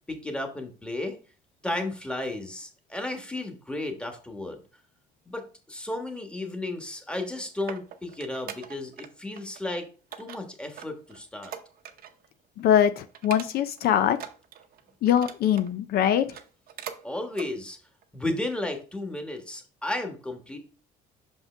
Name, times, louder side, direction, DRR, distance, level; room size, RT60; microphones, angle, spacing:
voice 1, 0.1-1.2 1.6-4.6 5.3-9.9 10.2-11.5 17.0-17.8 18.1-20.6, left 2 dB, 5° left, 4 dB, 1.3 m, -33 dB
sound 1, 7.3-9.1 9.4-9.7 10.1-12.3 12.6-12.8 13.1-13.8 14.1-15.7 16.2-17.0 17.3-17.5 18.0-18.1, right 9 dB, 60° right, 0.8 m, -42 dB
voice 2, 12.6-14.2 15.0-16.4, left 9 dB, 65° left, 10 dB, 0.5 m, -22 dB
5.9 x 5.4 x 3.3 m, 0.37 s
cardioid pair, 110°, 17 cm